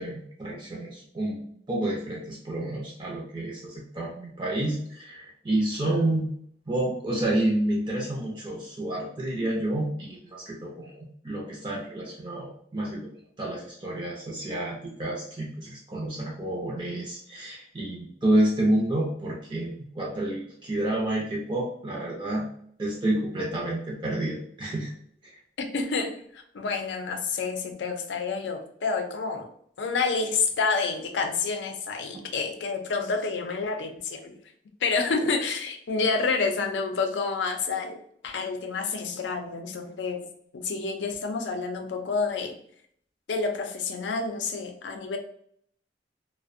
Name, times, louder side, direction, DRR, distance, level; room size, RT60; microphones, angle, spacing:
voice 1, 0.0-6.3 6.7-13.0 13.4-22.4 22.8-24.9, right 1 dB, 25° right, -3 dB, 0.4 m, -29 dB
voice 2, 25.6-29.5 29.8-34.4 34.8-38.0 38.2-40.3 40.5-42.6 43.3-45.2, left 4 dB, 90° left, 5 dB, 0.4 m, -29 dB
2.4 x 2.0 x 2.5 m, 0.65 s
head